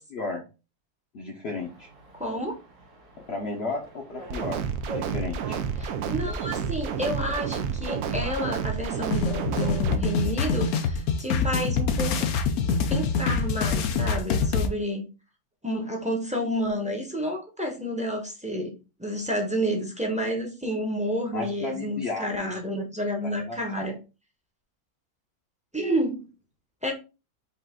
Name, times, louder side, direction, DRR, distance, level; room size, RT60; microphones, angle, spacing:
voice 1, 0.1-0.5 1.1-1.9 3.3-5.6 21.3-22.5 23.2-23.9, left 3 dB, 50° left, 0 dB, 0.9 m, -34 dB
sound 1, 1.6-10.0, right 2 dB, 55° right, 1.7 m, -43 dB
voice 2, 2.1-2.5 5.8-12.3 12.6-15.1 15.6-24.0 25.7-26.2 26.8-26.9, equal, 5° right, 1 dB, 0.7 m, -30 dB
sound 2, 4.3-10.0, right 6 dB, 80° right, 1.1 m, -30 dB
sound 3, 9.1-14.7, left 5 dB, 75° left, 1.1 m, -25 dB
5.5 x 2.5 x 3.7 m, 0.30 s
omnidirectional pair, 1.6 m